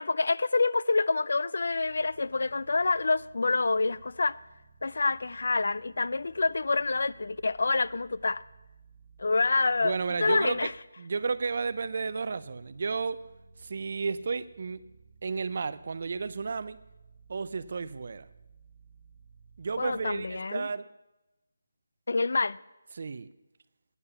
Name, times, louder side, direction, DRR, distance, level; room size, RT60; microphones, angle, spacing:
voice 1, 0.0-4.4 4.8-8.4 9.2-10.7 19.8-20.7 22.1-22.6, left 3 dB, 65° left, 0.4 m, -27 dB
sound 1, 1.6-10.8 11.2-20.4, right 4 dB, 35° right, 3.0 m, -57 dB
voice 2, 9.8-10.7 11.0-13.2 13.6-14.8 15.2-16.8 17.3-18.3 19.6-20.8 22.9-23.3, right 4 dB, 50° right, 0.5 m, -32 dB
11.0 x 9.6 x 6.9 m
figure-of-eight pair, 165°, 0 cm